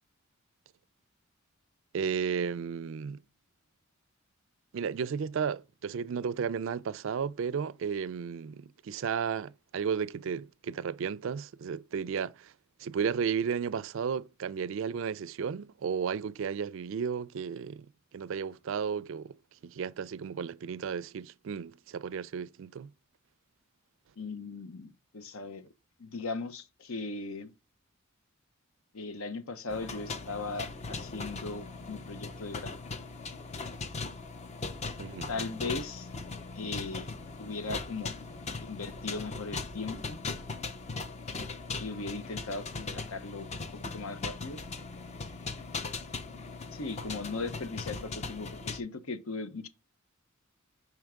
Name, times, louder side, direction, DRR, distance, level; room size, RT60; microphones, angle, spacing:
voice 1, 1.9-3.2 4.7-12.5 12.8-17.9 18.1-19.4 19.6-22.9 35.0-35.3, right 6 dB, 65° right, 0.4 m, -33 dB
voice 2, 24.2-25.7 26.0-27.5 28.9-32.8 35.3-36.1 36.5-37.1 37.4-38.2 38.6-40.2 41.8-44.6 46.7-49.7, left 3 dB, 80° left, 0.8 m, -38 dB
sound 1, 29.7-48.8, left 3 dB, 30° left, 0.5 m, -39 dB
5.7 x 4.5 x 3.6 m
head